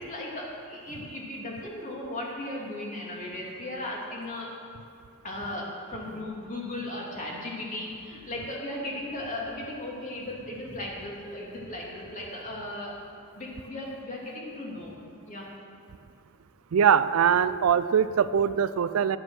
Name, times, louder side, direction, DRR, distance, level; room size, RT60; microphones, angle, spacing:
voice 1, 0.0-4.5 5.2-13.0 13.3-15.0 15.3-15.5, left 1 dB, 40° left, -3 dB, 2.4 m, -36 dB
voice 2, 16.7-19.2, right 7 dB, 85° right, 14 dB, 0.4 m, -22 dB
10.5 x 9.0 x 6.2 m, 2.3 s
head